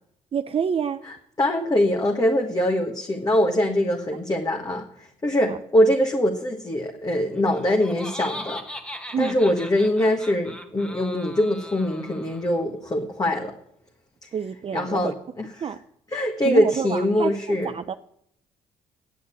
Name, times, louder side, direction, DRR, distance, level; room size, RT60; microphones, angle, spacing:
voice 1, 0.3-1.0 5.5-5.6 9.1-9.4 14.3-15.1 15.6-15.8 16.4-18.0, right 7 dB, 40° right, 9 dB, 0.6 m, -28 dB
voice 2, 1.1-8.6 9.2-13.5 14.2-14.3 14.7-15.4 16.1-17.7, left 1 dB, 25° left, 2 dB, 1.5 m, -23 dB
Laughter, 7.3-12.6, left 1 dB, 10° left, 1.6 m, -39 dB
9.6 x 8.2 x 8.9 m, 0.74 s
supercardioid pair, 70°, 14 cm